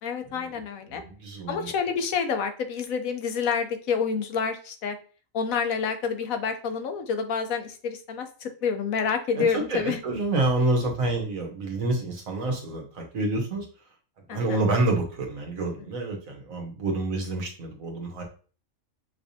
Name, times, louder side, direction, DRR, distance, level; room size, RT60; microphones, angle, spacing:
voice 1, 0.0-1.0 1.5-5.0 5.3-10.0 14.3-14.6, left 6 dB, 85° left, 7 dB, 1.2 m, -28 dB
voice 2, 0.9-1.7 9.5-13.7 14.3-18.2, right 2 dB, 75° right, 2 dB, 1.6 m, -28 dB
5.8 x 3.3 x 2.7 m, 0.39 s
omnidirectional pair, 1.4 m